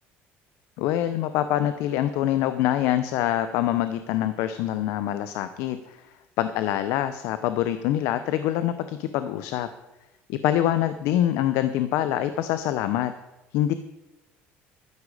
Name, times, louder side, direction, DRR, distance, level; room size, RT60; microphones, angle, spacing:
voice 1, 0.8-6.0 6.4-9.7 10.3-13.1 13.5-13.7, left 12 dB, 70° left, 11 dB, 0.7 m, -25 dB
12.5 x 10.0 x 4.9 m, 1.0 s
cardioid pair, 165°, 5 cm